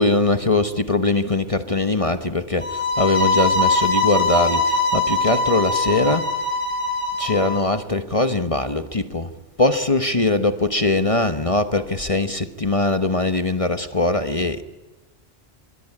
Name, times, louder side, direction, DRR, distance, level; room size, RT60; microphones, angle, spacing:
voice 1, 0.0-6.3 7.2-9.3 9.6-14.6, left 2 dB, 30° left, 1.2 m, -21 dB
sound 1, 2.6-7.6, left 2 dB, 50° left, 7.4 m, -22 dB
26.0 x 22.5 x 9.8 m
omnidirectional pair, 1.2 m